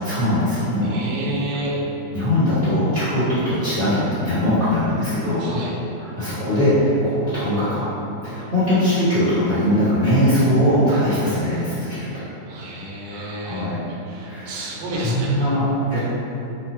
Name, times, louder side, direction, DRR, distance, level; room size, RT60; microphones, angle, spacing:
voice 1, 0.0-0.9 2.1-5.4 6.1-7.9 8.2-12.3 13.1-13.8 14.2-14.6 15.0-16.0, equal, 55° right, -15 dB, 0.5 m, -21 dB
voice 2, 0.9-1.8 5.4-5.7 12.5-15.5, right 1 dB, 75° right, -4 dB, 1.5 m, -30 dB
6.0 x 2.1 x 2.8 m, 2.9 s
omnidirectional pair, 3.5 m